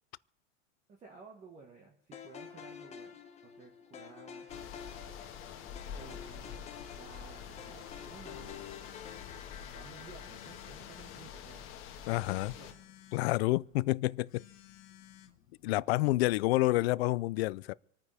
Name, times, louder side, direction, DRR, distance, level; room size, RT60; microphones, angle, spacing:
voice 1, 0.9-4.5 5.9-8.7 9.7-11.7 12.0-12.8, right 5 dB, 20° right, 1.5 m, -55 dB
sound 1, 2.1-12.4, left 7 dB, 15° left, 1.1 m, -50 dB
sound 2, 4.5-12.7, left 8 dB, 35° left, 1.6 m, -47 dB
Telephone, 7.5-16.0, left 12 dB, 90° left, 1.8 m, -59 dB
voice 2, 12.1-12.5 13.1-14.4 15.6-17.7, left 19 dB, 55° left, 0.4 m, -29 dB
27.0 x 9.5 x 3.4 m
supercardioid pair, 150°, 38 cm